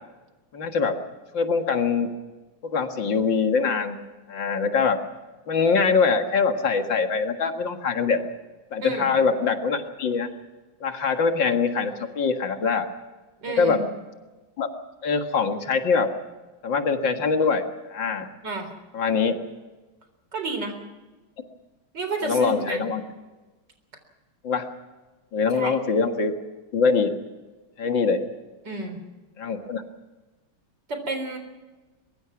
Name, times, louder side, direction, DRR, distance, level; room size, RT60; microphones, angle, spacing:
voice 1, 0.5-1.0 1.3-2.1 2.6-4.0 4.3-5.0 5.5-8.2 8.7-10.3 10.8-12.9 13.6-13.8 14.6-14.7 15.0-16.1 16.6-18.3 18.9-19.4 22.2-23.0 24.4-24.7 25.3-26.3 26.7-27.1 27.8-28.2 29.4-29.8, left 5 dB, 65° left, 6 dB, 2.5 m, -23 dB
voice 2, 8.8-9.1 13.4-13.8 18.4-18.7 20.3-20.7 21.9-22.8 25.5-25.7 28.6-29.0 30.9-31.4, right 3 dB, 60° right, 7 dB, 4.6 m, -30 dB
23.0 x 22.5 x 5.9 m, 1.2 s
omnidirectional pair, 2.2 m